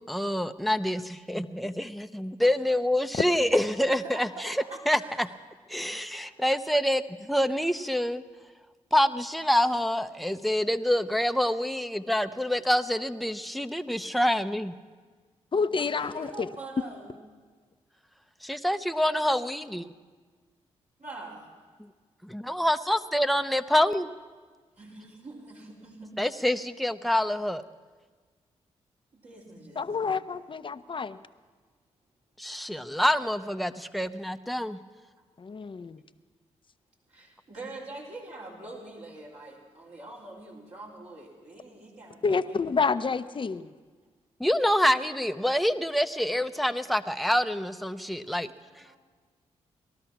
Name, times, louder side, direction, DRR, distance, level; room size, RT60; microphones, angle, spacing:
voice 1, 0.1-4.6 4.9-5.3 5.7-8.2 8.9-14.7 18.4-19.8 22.2-24.1 26.2-27.6 32.4-34.8 44.4-48.5 48.8-49.0, left 1 dB, ahead, 9 dB, 0.8 m, -26 dB
voice 2, 4.0-5.3 5.7-6.6 15.7-17.2 21.0-21.5 24.8-26.2 29.1-30.2 37.1-42.7 48.4-49.0, right 2 dB, 55° right, -5 dB, 4.0 m, -44 dB
voice 3, 15.5-16.5 29.8-31.2 35.4-36.0 42.2-43.7, left 5 dB, 40° left, 12 dB, 0.7 m, -28 dB
19.0 x 12.5 x 6.0 m, 1.5 s
supercardioid pair, 40°, 13 cm